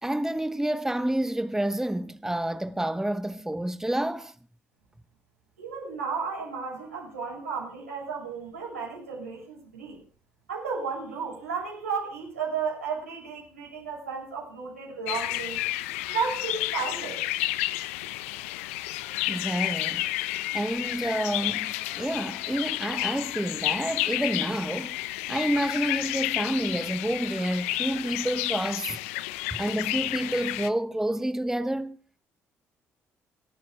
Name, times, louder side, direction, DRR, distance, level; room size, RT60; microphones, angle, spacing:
voice 1, 0.0-4.3 19.3-20.1 20.5-25.0 25.3-29.0 29.5-32.0, right 1 dB, 5° right, 1.2 m, -29 dB
voice 2, 5.6-10.0 10.5-15.6 16.1-17.2, right 5 dB, 85° right, 7.7 m, -33 dB
sound 1, 15.1-30.7, left 17 dB, 70° left, 0.7 m, -31 dB
29.0 x 14.5 x 2.3 m
figure-of-eight pair, 45°, 7 cm